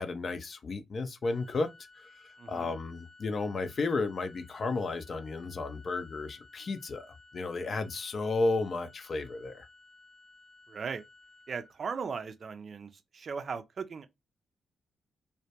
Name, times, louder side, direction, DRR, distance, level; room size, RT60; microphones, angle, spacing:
voice 1, 0.0-1.7 2.5-7.1 7.3-9.7, left 3 dB, 55° left, 0.4 m, -33 dB
Organ, 1.2-12.3, left 3 dB, 10° right, 0.8 m, -57 dB
voice 2, 2.4-2.7 10.7-11.0 11.5-14.1, right 5 dB, 55° right, 0.4 m, -38 dB
2.2 x 2.2 x 2.7 m
hypercardioid pair, 40°, 0 cm